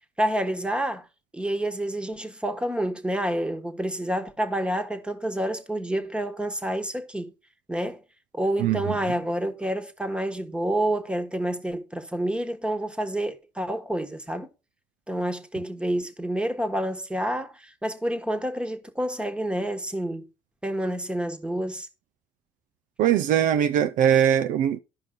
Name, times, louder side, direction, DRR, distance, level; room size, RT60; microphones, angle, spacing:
voice 1, 0.2-1.1 1.3-7.3 7.7-8.0 8.3-14.5 15.1-20.3 20.6-21.9, right 1 dB, 5° right, 1.3 m, -28 dB
voice 2, 23.0-24.8, right 9 dB, 65° right, 0.5 m, -21 dB
12.5 x 5.3 x 3.9 m
supercardioid pair, 80°, 15 cm